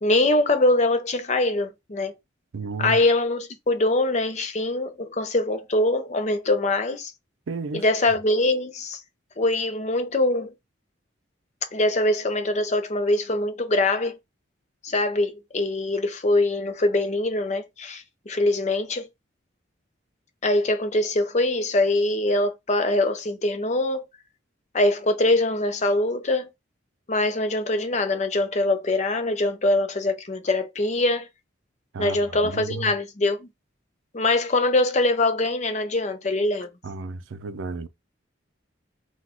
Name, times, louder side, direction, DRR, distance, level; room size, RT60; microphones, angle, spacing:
voice 1, 0.0-2.2 2.8-7.1 7.7-9.0 9.4-10.5 11.7-14.2 14.8-19.1 20.4-24.1 24.7-26.5 27.1-31.3 32.0-33.5 34.1-36.7, left 2 dB, 35° left, 0.6 m, -23 dB
voice 2, 2.5-3.0 7.5-7.8 31.9-32.2 32.4-32.9 36.8-37.9, right 4 dB, 80° right, 0.5 m, -32 dB
4.0 x 2.3 x 4.3 m
head